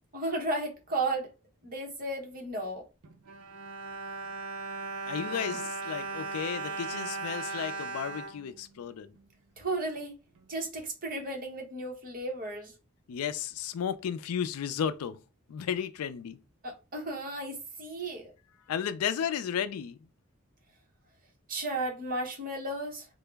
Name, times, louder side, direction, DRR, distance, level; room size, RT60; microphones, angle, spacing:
voice 1, 0.1-1.3 1.6-2.8 9.6-10.2 10.5-12.7 16.6-18.3 21.5-23.1, right 2 dB, 40° right, 1.0 m, -34 dB
Bowed string instrument, 3.0-9.3 10.0-10.1 10.4-10.5, right 3 dB, 75° right, 0.5 m, -38 dB
voice 2, 5.1-9.1 13.1-15.2 15.5-16.4 18.7-20.0, left 8 dB, 80° left, 0.4 m, -33 dB
3.7 x 2.0 x 3.3 m
head